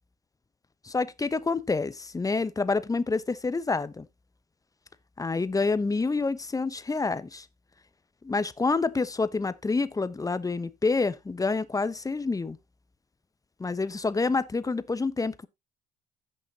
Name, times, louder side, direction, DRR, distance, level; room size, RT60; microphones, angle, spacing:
voice 1, 0.8-4.1 5.2-7.5 8.2-12.6 13.6-15.5, left 3 dB, 15° left, 0.9 m, -28 dB
15.5 x 6.4 x 2.8 m
hypercardioid pair, 55°, 20 cm